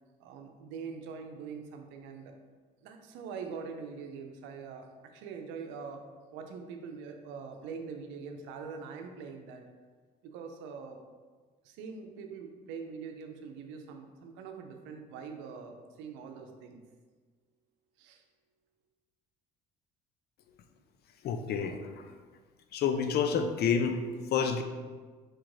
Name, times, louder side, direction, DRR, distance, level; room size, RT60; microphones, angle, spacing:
voice 1, 0.2-2.4 2.8-6.0 6.3-9.6 10.2-11.0 11.6-16.8 18.0-18.2, right 5 dB, 85° right, 4 dB, 0.6 m, -43 dB
voice 2, 21.2-21.8 22.7-24.0 24.3-24.6, left 6 dB, 60° left, 8 dB, 0.5 m, -28 dB
4.4 x 2.5 x 4.6 m, 1.4 s
supercardioid pair, 85°, 19 cm